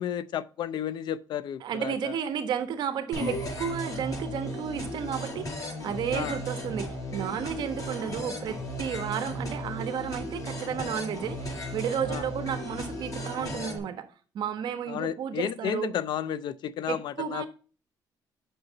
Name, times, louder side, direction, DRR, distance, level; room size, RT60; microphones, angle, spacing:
voice 1, 0.0-2.2 6.1-6.4 12.1-12.3 14.9-17.4, left 10 dB, 70° left, 0.6 m, -32 dB
voice 2, 1.6-14.1 14.3-16.0 16.9-17.5, right 8 dB, 70° right, 1.3 m, -32 dB
sound 1, 3.1-13.8, equal, 45° left, 4.5 m, -35 dB
7.9 x 6.3 x 4.0 m
cardioid pair, 120°, 8 cm